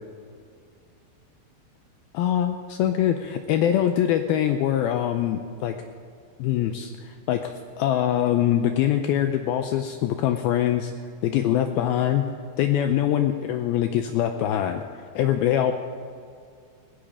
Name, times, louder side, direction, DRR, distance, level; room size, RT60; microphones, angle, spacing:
voice 1, 2.1-5.7 6.4-10.9 11.2-12.3 12.6-14.8 15.2-15.7, left 11 dB, 90° left, 6 dB, 2.1 m, -23 dB
20.5 x 16.0 x 3.6 m, 2.3 s
omnidirectional pair, 5.1 m